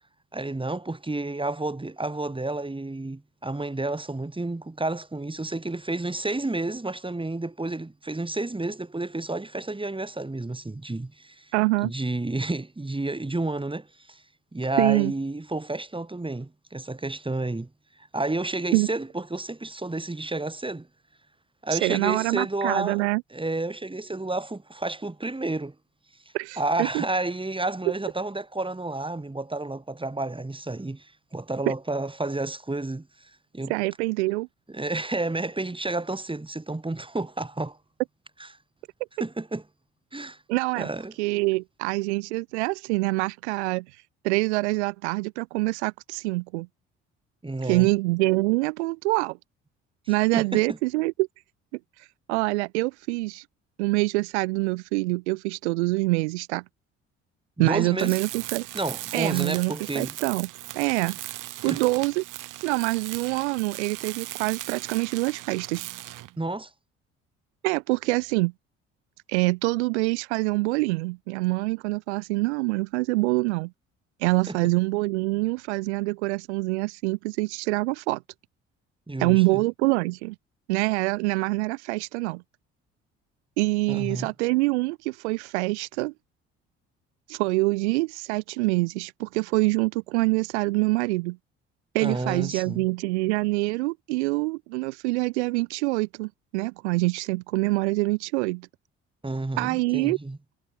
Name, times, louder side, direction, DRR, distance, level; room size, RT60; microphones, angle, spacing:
voice 1, 0.3-11.5 11.8-14.2 14.5-17.7 18.0-20.9 21.6-23.0 23.3-25.7 26.6-33.7 34.7-37.8 38.4-38.5 39.2-39.6 40.1-40.4 40.7-41.1 47.4-47.9 50.1-50.8 57.6-58.2 58.7-60.1 61.7-61.8 66.4-66.7 74.5-74.6 79.1-79.6 83.9-84.3 92.0-92.8 99.2-100.4, right 2 dB, 15° right, 7.9 m, -30 dB
voice 2, 11.5-11.9 14.8-15.1 18.7-18.9 21.7-23.2 26.3-27.0 31.7-31.8 33.7-34.5 40.5-40.9 41.2-43.8 44.2-46.7 47.6-49.4 50.1-51.3 52.0-53.4 53.8-56.6 57.6-58.7 59.1-60.5 60.7-61.2 61.6-62.2 62.6-65.9 67.6-68.5 69.3-73.7 74.2-78.2 79.2-80.3 80.7-82.4 83.6-86.1 87.3-91.4 91.9-98.7 99.6-100.2, right 24 dB, 80° right, 1.1 m, -25 dB
Tools, 58.0-66.4, right 16 dB, 65° right, 3.2 m, -38 dB
hypercardioid pair, 55°, 33 cm